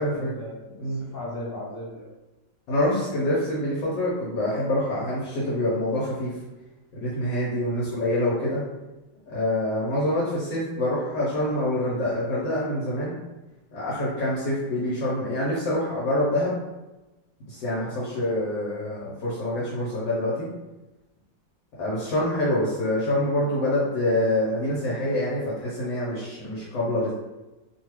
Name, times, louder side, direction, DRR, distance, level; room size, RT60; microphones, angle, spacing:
voice 1, 0.0-2.1, left 1 dB, 50° left, -11 dB, 0.7 m, -37 dB
voice 2, 2.7-6.3 7.0-8.6 9.3-13.1 13.7-16.5 17.5-20.5 21.8-27.1, left 1 dB, 80° left, -8 dB, 1.5 m, -26 dB
3.0 x 2.3 x 3.1 m, 1.1 s
omnidirectional pair, 2.0 m